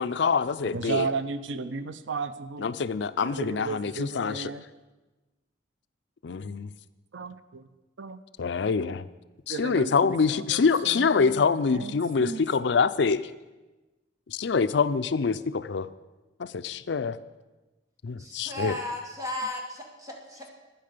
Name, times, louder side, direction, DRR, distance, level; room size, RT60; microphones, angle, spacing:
voice 1, 0.0-1.1 2.6-4.5 6.2-6.7 8.4-9.1 9.5-13.3 14.3-15.9 16.4-17.2 18.0-18.8, left 5 dB, 70° left, 14 dB, 0.5 m, -25 dB
voice 2, 0.7-2.8 3.2-4.6 7.1-7.7 8.0-8.2 9.5-12.4, right 4 dB, 85° right, 13 dB, 0.6 m, -34 dB
voice 3, 18.2-20.5, left 2 dB, 20° right, 1 dB, 2.1 m, -35 dB
12.0 x 9.4 x 6.6 m, 1.2 s
head